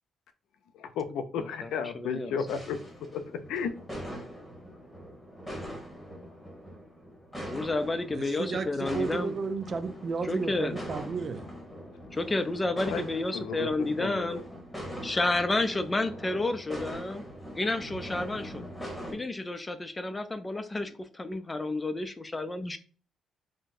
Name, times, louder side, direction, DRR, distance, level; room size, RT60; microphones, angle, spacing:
voice 1, 0.7-2.8 3.1-3.7 12.8-13.0 13.3-13.7 14.0-14.4, left 6 dB, 85° left, 0.4 m, -33 dB
voice 2, 1.4-2.4 7.5-9.3 10.2-10.8 12.1-14.4 15.0-17.2 17.5-18.6 19.1-22.8, left 2 dB, 20° left, 0.4 m, -31 dB
sound 1, 2.5-19.1, equal, ahead, 1.1 m, -42 dB
voice 3, 8.1-11.5, right 5 dB, 45° right, 0.3 m, -33 dB
2.6 x 2.1 x 3.9 m
cardioid pair, 90°, 0 cm